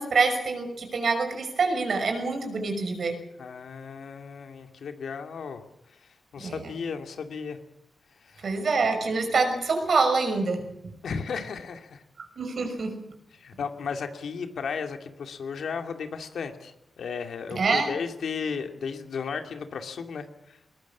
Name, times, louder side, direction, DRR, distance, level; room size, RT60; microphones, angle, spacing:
voice 1, 0.0-3.2 6.4-6.6 8.4-10.6 12.4-12.9 17.5-17.9, right 4 dB, 60° right, 5 dB, 5.9 m, -25 dB
voice 2, 3.4-5.6 6.0-7.6 8.2-8.5 11.0-12.0 13.3-20.6, left 6 dB, 85° left, 5 dB, 2.5 m, -35 dB
21.0 x 20.0 x 7.3 m, 0.81 s
wide cardioid pair, 135°, 0 cm